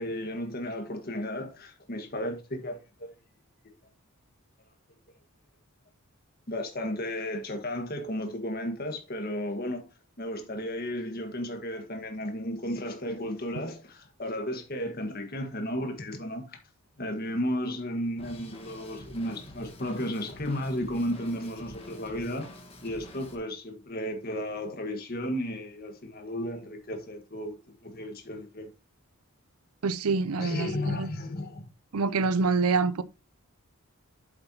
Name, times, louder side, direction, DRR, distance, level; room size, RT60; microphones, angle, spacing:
voice 1, 0.0-3.1 6.5-16.6 17.0-22.5 22.8-28.7 30.4-31.6, left 1 dB, 40° left, 1.7 m, -34 dB
Drum kit, 18.2-23.4, equal, 25° left, 1.6 m, -47 dB
voice 2, 29.8-31.1 31.9-33.0, right 4 dB, 80° right, 0.6 m, -26 dB
7.9 x 7.8 x 2.9 m
head